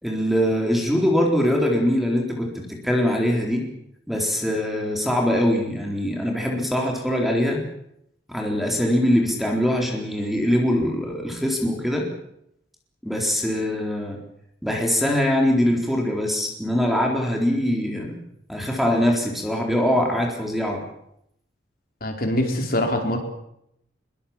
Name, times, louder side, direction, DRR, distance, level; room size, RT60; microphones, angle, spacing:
voice 1, 0.0-3.6 4.1-7.6 8.3-12.1 13.0-14.2 14.6-18.2 18.5-20.8, equal, ahead, 0 dB, 4.0 m, -22 dB
voice 2, 22.0-23.2, left 1 dB, 50° left, 3 dB, 4.7 m, -23 dB
23.5 x 23.0 x 7.4 m, 0.76 s
head